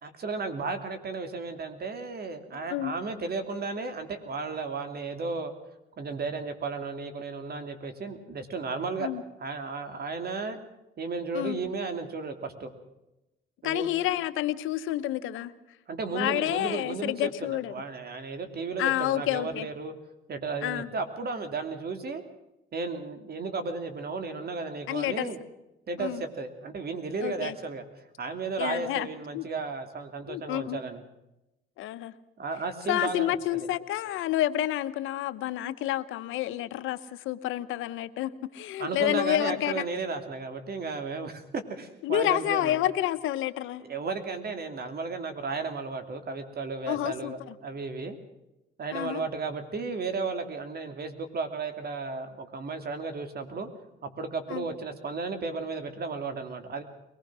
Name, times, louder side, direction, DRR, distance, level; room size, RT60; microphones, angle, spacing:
voice 1, 0.0-5.5 6.0-9.1 9.4-10.6 11.0-12.7 13.6-13.9 15.9-19.9 20.3-22.2 22.7-25.4 25.9-27.8 28.2-31.0 32.4-33.7 38.8-42.8 43.8-48.2 48.8-53.7 54.0-56.8, right 4 dB, 50° right, 8 dB, 2.8 m, -34 dB
voice 2, 13.6-15.5 16.1-17.7 18.8-19.7 20.6-20.9 24.9-25.3 26.0-26.2 27.2-27.5 28.6-29.1 29.3-29.4 30.3-30.8 31.8-32.1 32.9-39.8 42.0-43.8 46.9-47.3 48.9-49.2 54.5-54.7, left 13 dB, 90° left, 12 dB, 1.0 m, -29 dB
23.0 x 19.5 x 6.2 m, 0.94 s
cardioid pair, 90°, 20 cm